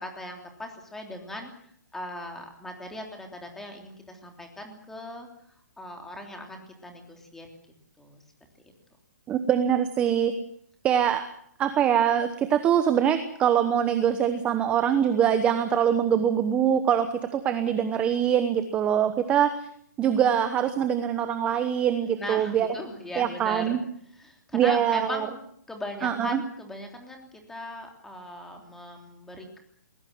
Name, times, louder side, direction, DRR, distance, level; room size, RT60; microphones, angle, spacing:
voice 1, 0.0-1.5 1.9-5.3 5.8-7.5 8.0-8.2 22.2-23.8 24.1-25.4 25.7-29.6, left 1 dB, 5° left, 3 dB, 3.2 m, -39 dB
voice 2, 9.3-10.3 10.8-11.3 11.6-19.7 20.0-22.7 23.2-23.8 24.5-25.3 26.0-26.4, right 9 dB, 10° right, 10 dB, 1.0 m, -23 dB
20.5 x 20.5 x 7.8 m, 0.66 s
hypercardioid pair, 165°, 10 cm